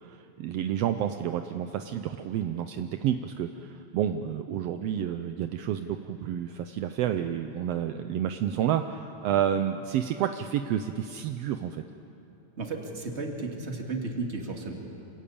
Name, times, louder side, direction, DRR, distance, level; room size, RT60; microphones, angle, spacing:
voice 1, 0.0-11.8, right 10 dB, 80° right, 7 dB, 1.4 m, -30 dB
voice 2, 12.6-14.7, right 3 dB, 25° right, 1 dB, 2.1 m, -34 dB
27.0 x 18.0 x 8.6 m, 2.8 s
omnidirectional pair, 3.5 m